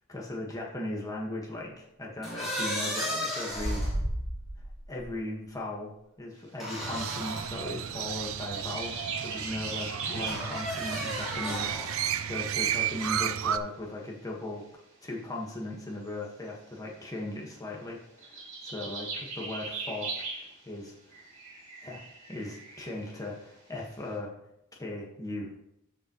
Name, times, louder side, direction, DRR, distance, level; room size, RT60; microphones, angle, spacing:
voice 1, 0.1-3.9 4.9-14.7 15.0-21.2 21.8-24.3 24.7-25.5, left 1 dB, 15° left, -2 dB, 1.5 m, -38 dB
sound 1, 2.2-5.1 6.6-7.5 8.2-8.3 10.3-12.1, equal, ahead, 3.6 m, -33 dB
Crow, 6.8-13.6, right 9 dB, 80° right, 0.5 m, -33 dB
sound 2, 8.1-10.6 11.5-13.1 13.7-13.8 14.6-14.7 16.2-16.8 18.2-20.7 21.1-23.5, right 3 dB, 40° right, 3.4 m, -40 dB
12.0 x 5.2 x 3.1 m, 0.77 s
head